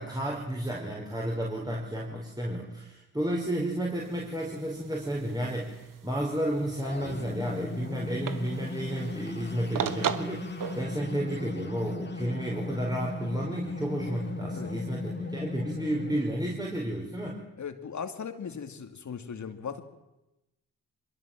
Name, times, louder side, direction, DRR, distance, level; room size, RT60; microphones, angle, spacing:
voice 1, 0.0-17.4, right 1 dB, 10° right, -2 dB, 5.3 m, -32 dB
sound 1, 4.0-10.8, right 8 dB, 65° right, 1.6 m, -38 dB
sound 2, 6.5-16.2, left 3 dB, 30° left, 2.5 m, -37 dB
voice 2, 17.6-19.8, left 6 dB, 55° left, 8 dB, 2.6 m, -38 dB
24.0 x 21.0 x 7.6 m, 0.97 s
supercardioid pair, 60°, 34 cm